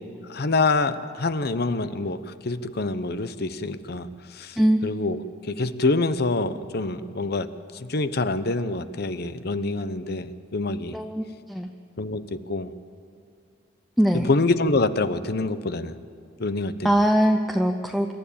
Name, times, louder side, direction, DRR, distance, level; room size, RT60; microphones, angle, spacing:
voice 1, 0.3-11.0 12.0-12.7 14.2-15.9 16.4-16.9, left 3 dB, 55° left, 12 dB, 0.8 m, -26 dB
voice 2, 10.9-11.2 11.5-11.7 14.0-14.3 16.8-18.1, equal, ahead, 4 dB, 0.6 m, -21 dB
26.5 x 12.5 x 8.6 m, 2.3 s
head